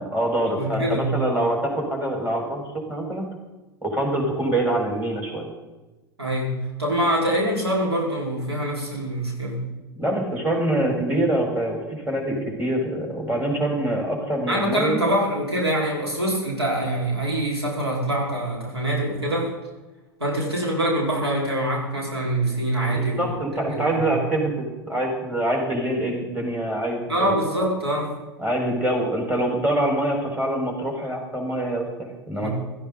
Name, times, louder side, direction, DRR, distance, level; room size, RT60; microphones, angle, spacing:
voice 1, 0.0-2.6 2.9-3.3 3.8-5.5 10.0-15.0 22.9-27.4 28.4-32.5, right 1 dB, 15° right, 0 dB, 5.3 m, -25 dB
voice 2, 0.6-1.1 6.2-9.6 14.5-19.5 20.2-23.3 23.7-24.1 27.1-28.1 32.4-32.5, right 1 dB, 90° right, -3 dB, 4.9 m, -24 dB
16.5 x 14.0 x 4.1 m, 1.1 s
figure-of-eight pair, 90°, 13 cm